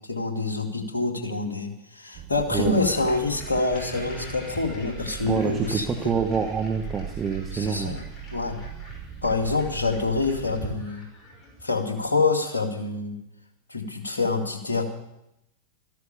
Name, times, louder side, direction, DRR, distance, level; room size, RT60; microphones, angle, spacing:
voice 1, 0.0-5.9 7.5-8.6 9.2-11.1 11.6-13.2 13.7-14.8, left 3 dB, 75° left, 3 dB, 2.4 m, -26 dB
sound 1, 2.1-10.8, right 9 dB, 40° right, 1.0 m, -40 dB
sound 2, 2.5-11.8, equal, 25° left, 6.2 m, -44 dB
voice 2, 5.2-8.0, right 5 dB, 20° right, 4 dB, 1.4 m, -26 dB
14.0 x 12.5 x 6.9 m, 0.84 s
figure-of-eight pair, 90°, 0 cm